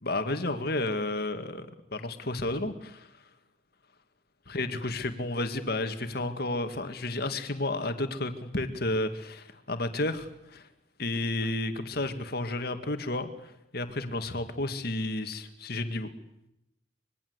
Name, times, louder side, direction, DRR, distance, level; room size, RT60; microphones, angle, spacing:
voice 1, 0.0-3.1 4.5-10.7 11.0-16.1, left 2 dB, 55° left, 8 dB, 2.1 m, -32 dB
25.5 x 22.5 x 8.1 m, 0.86 s
head